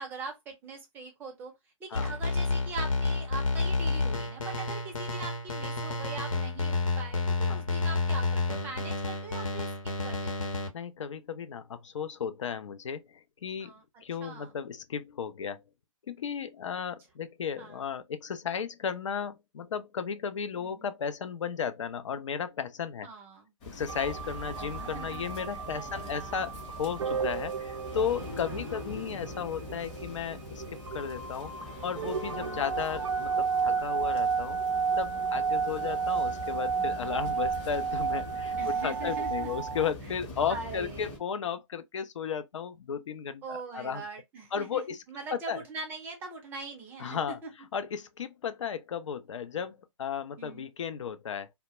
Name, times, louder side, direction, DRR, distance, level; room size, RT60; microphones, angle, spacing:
voice 1, 0.0-1.5 1.8-10.6 13.6-13.8 14.2-14.5 17.6-17.8 20.5-20.8 23.0-23.5 24.6-25.3 25.7-26.4 28.5-28.8 32.4-32.7 35.4-36.1 38.6-39.6 40.0-40.1 40.5-41.1 43.4-44.8 45.1-47.5 50.4-50.7, right 4 dB, 10° right, 0.4 m, -42 dB
sound 1, 1.9-10.7, left 3 dB, 80° left, 0.9 m, -30 dB
voice 2, 10.7-13.7 14.0-15.6 16.1-23.1 23.7-31.5 31.8-34.6 35.0-44.0 44.5-45.0 45.3-45.6 47.0-47.4 47.7-51.5, left 7 dB, 65° left, 0.4 m, -34 dB
sound 2, 23.6-41.2, left 2 dB, 25° left, 0.7 m, -43 dB
sound 3, 23.9-39.9, right 5 dB, 65° right, 0.5 m, -32 dB
2.2 x 2.0 x 2.8 m
hypercardioid pair, 140°, 17 cm